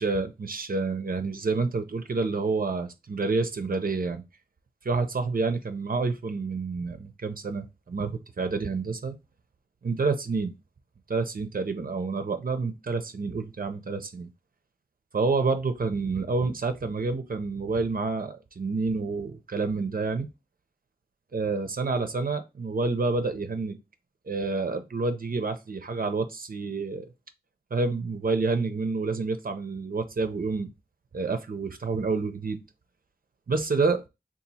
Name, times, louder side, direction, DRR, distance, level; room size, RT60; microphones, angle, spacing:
voice 1, 0.0-4.2 4.8-9.1 9.8-10.5 11.1-14.3 15.1-20.3 21.3-23.8 24.3-27.1 27.7-30.7 31.1-32.6 33.5-34.0, right 4 dB, 70° right, 0.5 m, -28 dB
2.8 x 2.5 x 4.0 m
wide cardioid pair, 45°, 16 cm